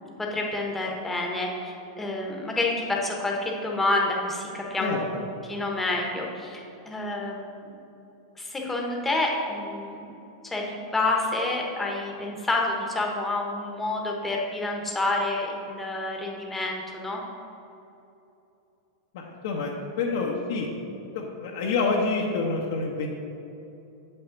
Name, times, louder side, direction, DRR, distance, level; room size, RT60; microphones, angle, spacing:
voice 1, 0.3-5.2 5.5-7.7 8.4-10.0 10.4-17.2, left 2 dB, 10° left, -1 dB, 1.2 m, -28 dB
voice 2, 19.1-20.7 21.1-23.1, left 4 dB, 65° left, -1 dB, 0.9 m, -27 dB
7.8 x 5.6 x 4.0 m, 2.8 s
hypercardioid pair, 120°, 2 cm